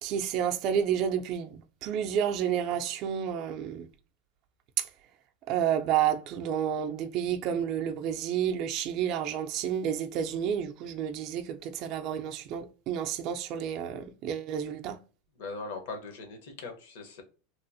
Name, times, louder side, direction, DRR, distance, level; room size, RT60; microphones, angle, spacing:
voice 1, 0.0-3.9 4.8-4.9 5.5-15.0, right 9 dB, 45° right, 0.3 m, -30 dB
voice 2, 15.4-17.2, left 3 dB, 75° left, 0.9 m, -40 dB
2.9 x 2.0 x 2.6 m
supercardioid pair, 135°, 0 cm